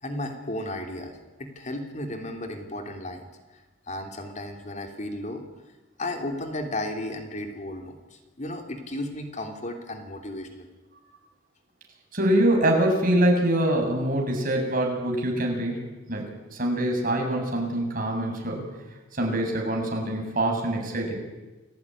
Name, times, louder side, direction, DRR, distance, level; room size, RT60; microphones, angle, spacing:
voice 1, 0.0-5.4 6.0-10.7, left 1 dB, 40° left, 4 dB, 3.3 m, -34 dB
voice 2, 12.1-15.8 16.1-18.6 19.2-21.1, right 1 dB, 45° right, 1 dB, 7.4 m, -24 dB
29.5 x 18.5 x 10.0 m, 1.2 s
head